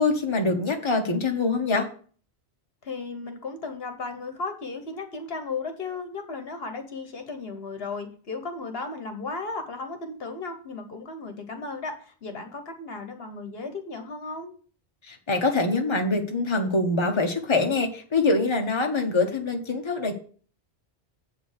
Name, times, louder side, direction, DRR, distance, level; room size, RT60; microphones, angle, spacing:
voice 1, 0.0-1.9 15.1-20.1, left 3 dB, 25° left, 3 dB, 1.2 m, -24 dB
voice 2, 2.8-14.5, left 3 dB, 65° left, 6 dB, 1.4 m, -35 dB
8.0 x 5.1 x 6.6 m, 0.42 s
omnidirectional pair, 1.1 m